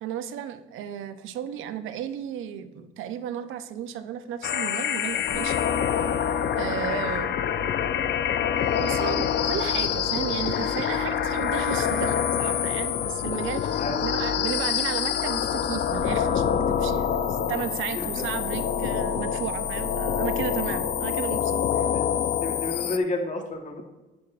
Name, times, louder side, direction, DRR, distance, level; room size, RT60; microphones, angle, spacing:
voice 1, 0.0-5.7 6.6-7.3 8.8-21.9, right 9 dB, 85° right, 11 dB, 0.7 m, -34 dB
sound 1, 4.4-23.0, left 8 dB, 60° left, 0.6 m, -26 dB
voice 2, 6.6-8.2 13.0-13.1 13.8-14.0 17.9-18.2 21.9-22.0 22.4-23.8, left 2 dB, 40° left, 3 dB, 1.3 m, -33 dB
10.5 x 9.4 x 2.5 m, 1.1 s
cardioid pair, 90°, 20 cm